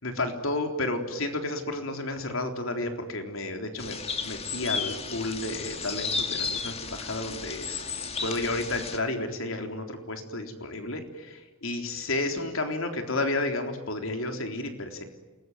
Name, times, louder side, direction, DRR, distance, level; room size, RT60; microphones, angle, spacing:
voice 1, 0.0-7.8 8.2-15.0, left 2 dB, 75° left, 5 dB, 3.7 m, -32 dB
sound 1, 3.8-9.0, left 5 dB, 30° left, 2.3 m, -33 dB
29.0 x 21.5 x 9.4 m, 1.2 s
head